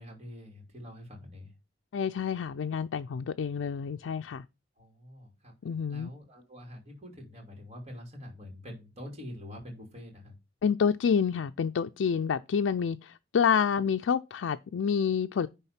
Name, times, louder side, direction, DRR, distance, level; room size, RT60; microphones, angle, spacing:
voice 1, 0.0-1.5 4.8-5.6 5.9-10.3, left 1 dB, 35° right, 2.7 m, -45 dB
voice 2, 1.9-4.4 5.6-6.1 10.6-15.5, left 7 dB, 85° left, 0.4 m, -28 dB
9.9 x 3.5 x 5.8 m
head